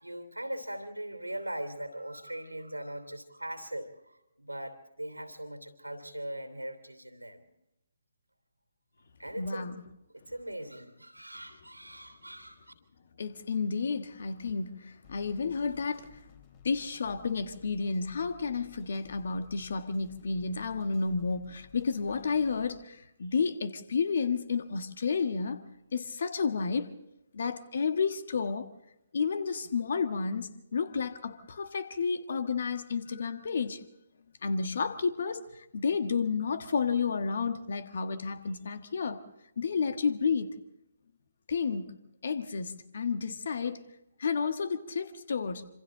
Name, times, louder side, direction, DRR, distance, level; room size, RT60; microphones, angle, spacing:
voice 1, 0.0-7.5 9.2-9.9 10.1-12.7, right 1 dB, 85° right, 3.0 m, -40 dB
voice 2, 9.4-9.8 13.2-16.2 16.6-25.6 25.9-26.9 27.3-28.7 29.1-33.8 34.4-39.2 39.6-40.5 41.5-42.0 42.2-43.8 44.2-45.7, left 5 dB, 50° left, 1.5 m, -31 dB
sound 1, 15.0-22.7, left 10 dB, 30° left, 3.6 m, -57 dB
26.5 x 25.5 x 3.9 m
figure-of-eight pair, 135°, 0 cm